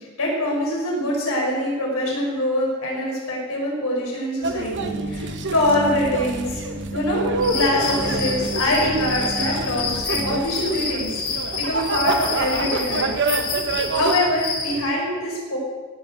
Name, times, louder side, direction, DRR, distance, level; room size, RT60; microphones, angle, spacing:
voice 1, 0.0-6.6 6.9-11.2 11.5-13.1 13.9-15.6, left 1 dB, 75° left, -2 dB, 6.1 m, -24 dB
sound 1, 4.4-14.1, right 3 dB, 55° right, 1.1 m, -28 dB
sound 2, 4.7-10.4, right 2 dB, 85° right, 4.1 m, -32 dB
sound 3, 7.4-14.8, left 4 dB, 45° left, 3.2 m, -29 dB
17.5 x 7.7 x 8.0 m, 1.4 s
head